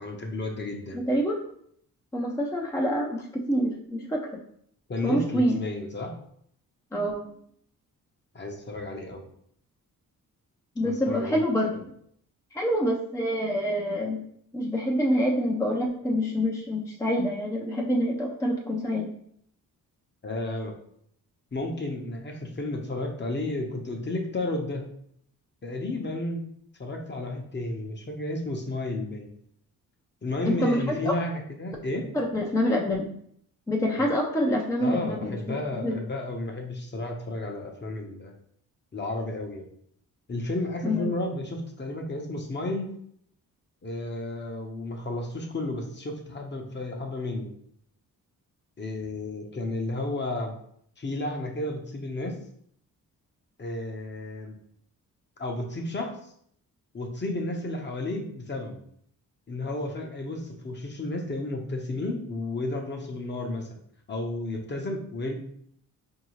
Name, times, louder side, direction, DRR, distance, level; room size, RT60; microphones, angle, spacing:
voice 1, 0.0-1.0 4.9-6.1 8.3-9.2 10.8-11.4 20.2-20.7 21.5-24.8 25.6-26.4 26.8-29.3 30.2-32.1 34.0-34.1 34.8-38.3 38.9-39.7 40.3-42.9 43.8-47.5 48.8-50.5 51.0-52.4 53.6-54.5 55.4-56.3 56.9-58.8 59.5-63.7 64.1-65.3, left 2 dB, 30° left, 2 dB, 0.8 m, -32 dB
voice 2, 0.9-1.4 2.1-4.2 5.0-5.6 6.9-7.2 10.8-11.9 12.5-14.2 14.5-19.1 30.5-31.1 32.1-33.1 33.7-36.0 40.8-41.1, equal, 10° left, -1 dB, 0.5 m, -26 dB
4.5 x 2.7 x 3.0 m, 0.67 s
cardioid pair, 80°, 35 cm